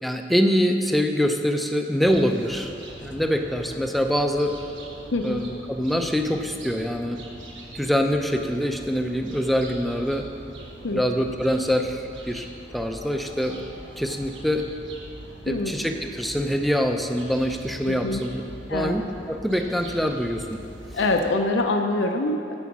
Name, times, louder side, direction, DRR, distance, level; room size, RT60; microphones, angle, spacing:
voice 1, 0.0-2.7 3.0-4.5 5.2-7.2 7.7-10.3 10.9-12.5 12.7-13.6 14.0-14.7 15.5-18.4 18.7-19.0 19.3-20.6, equal, ahead, 4 dB, 0.5 m, -24 dB
sound 1, 2.0-21.3, right 1 dB, 70° right, 1.6 m, -43 dB
voice 2, 15.5-15.8 17.8-18.2 18.7-19.0 20.9-22.5, left 2 dB, 75° left, 4 dB, 0.6 m, -25 dB
9.7 x 8.2 x 6.1 m, 2.6 s
head